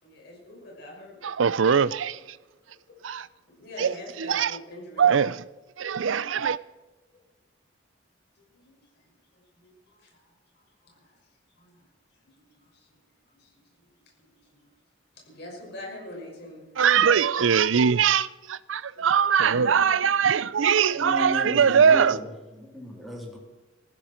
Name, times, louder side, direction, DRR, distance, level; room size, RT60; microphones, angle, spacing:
voice 1, 0.0-1.1 3.5-5.1 8.5-8.7 9.6-9.7 10.8-10.9 11.6-11.7 15.3-16.7 19.4-20.1 20.8-20.9, left 1 dB, 60° left, 6.0 m, -42 dB
voice 2, 1.2-2.4 3.0-3.3 3.8-4.5 5.0-5.4 5.8-6.6 16.8-22.2, right 7 dB, 85° right, 0.5 m, -22 dB
voice 3, 20.9-22.3 22.5-23.4, equal, ahead, 3.6 m, -35 dB
20.0 x 15.0 x 4.5 m
head